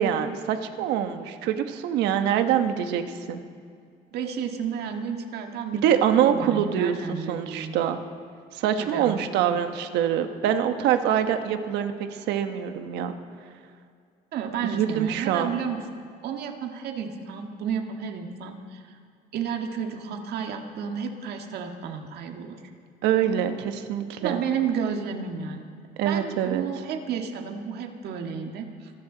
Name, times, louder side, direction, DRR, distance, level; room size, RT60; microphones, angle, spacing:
voice 1, 0.0-3.4 5.7-8.0 8.5-13.1 14.6-15.5 23.0-24.4 26.0-26.6, right 9 dB, 90° right, 8 dB, 1.1 m, -25 dB
voice 2, 4.1-7.8 8.8-9.2 14.3-15.8 16.2-18.8 19.3-22.6 24.2-25.7 26.0-28.9, right 7 dB, 75° right, 4 dB, 1.8 m, -32 dB
25.5 x 13.5 x 3.9 m, 2.3 s
cardioid pair, 110°, 17 cm